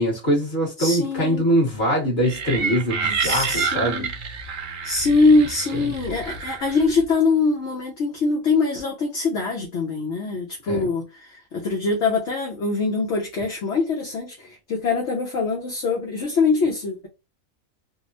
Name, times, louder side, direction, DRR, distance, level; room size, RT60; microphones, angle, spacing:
voice 1, 0.0-4.1 5.8-5.9 10.7-10.9, equal, 40° left, 1.7 m, -23 dB
voice 2, 0.8-1.4 3.2-4.1 4.8-11.0 11.5-17.1, left 3 dB, 60° left, 1.1 m, -23 dB
sound 1, 2.2-7.1, right 5 dB, 50° right, 0.6 m, -29 dB
3.5 x 2.1 x 2.6 m
omnidirectional pair, 1.4 m